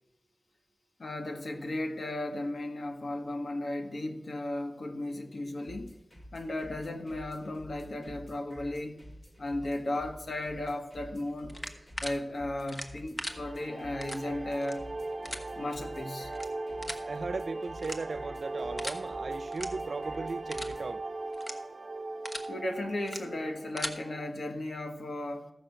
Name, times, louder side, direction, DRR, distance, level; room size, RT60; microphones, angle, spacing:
voice 1, 1.0-6.0 6.3-9.0 9.4-11.6 12.0-14.9 15.5-16.3 22.5-25.5, left 1 dB, 85° left, 1.3 m, -35 dB
sound 1, 5.6-21.0, equal, 45° left, 2.5 m, -50 dB
sound 2, 11.5-12.1 12.7-13.3 14.0-14.2 14.6-14.7 15.2-15.4 16.3-16.5 16.8-17.0 17.8-18.2 18.8-19.0 19.5-19.7 20.0-20.2 20.5-20.7 21.3-21.5 22.0-22.5 23.0-23.2 23.6-23.9, equal, 25° left, 1.1 m, -38 dB
sound 3, 13.2-24.3, right 2 dB, 50° right, 0.9 m, -39 dB
voice 2, 17.1-21.1, right 4 dB, 85° right, 0.5 m, -37 dB
14.0 x 5.8 x 6.9 m
wide cardioid pair, 80°, 0 cm